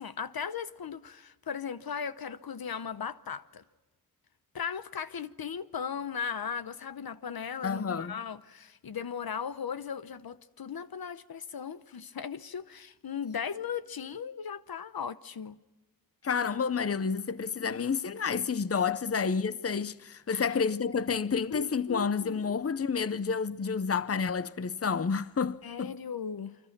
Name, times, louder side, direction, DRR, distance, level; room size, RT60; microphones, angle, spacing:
voice 1, 0.0-3.6 4.5-15.6 20.3-20.5 21.5-22.4 25.6-26.6, left 7 dB, 85° left, 0.9 m, -37 dB
voice 2, 7.6-8.2 16.2-25.9, left 5 dB, 40° left, 0.7 m, -30 dB
28.5 x 24.5 x 6.0 m
wide cardioid pair, 95°, 35 cm